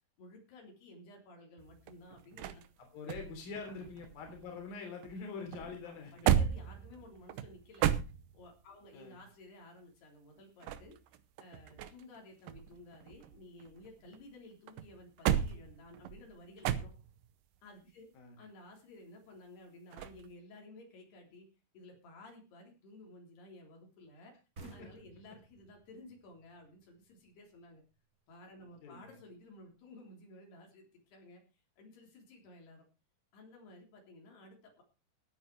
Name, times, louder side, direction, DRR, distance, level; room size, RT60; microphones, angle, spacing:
voice 1, 0.2-2.6 3.6-3.8 5.6-7.9 8.3-11.0 11.4-16.9 17.6-18.1 18.4-21.5 21.7-24.4 24.7-27.8 28.3-31.4 31.8-32.8 33.3-34.8, left 2 dB, 75° left, 1 dB, 5.6 m, -55 dB
sound 1, 1.6-4.7 5.0-8.7 10.4-12.2 12.5-14.2 14.7-17.3 19.9-20.3, right 10 dB, 70° right, 2.4 m, -35 dB
voice 2, 2.8-6.3 8.9-9.2 18.1-18.3 24.8-24.9 28.8-29.2, left 5 dB, 60° left, 3 dB, 5.1 m, -45 dB
sound 2, 24.6-28.0, right 3 dB, 35° right, 1.7 m, -56 dB
17.0 x 9.9 x 4.6 m, 0.30 s
omnidirectional pair, 4.6 m